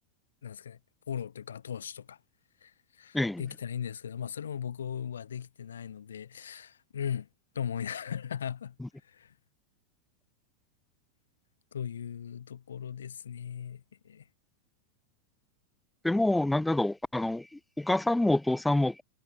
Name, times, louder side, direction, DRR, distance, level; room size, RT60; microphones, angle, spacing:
voice 1, 0.4-0.8 1.1-2.2 2.6-7.3 7.5-8.8 9.0-9.3 11.7-14.3, left 8 dB, 65° left, 0.6 m, -38 dB
voice 2, 16.0-17.5 17.8-19.0, left 1 dB, 5° left, 0.6 m, -26 dB
figure-of-eight pair, 90°, 0 cm